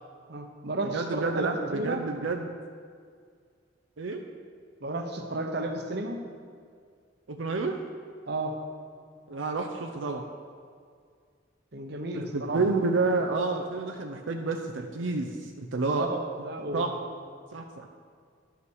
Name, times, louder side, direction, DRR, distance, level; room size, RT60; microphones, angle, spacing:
voice 1, 0.3-2.0 4.8-6.2 8.3-8.5 11.7-12.6 15.9-16.9, right 2 dB, 60° right, 4 dB, 1.0 m, -33 dB
voice 2, 0.9-2.5 4.0-4.2 7.3-7.8 9.3-10.2 12.1-16.0 16.7-16.9 17.5-17.9, right 3 dB, 85° right, 4 dB, 0.6 m, -29 dB
11.0 x 5.8 x 6.3 m, 2.1 s
head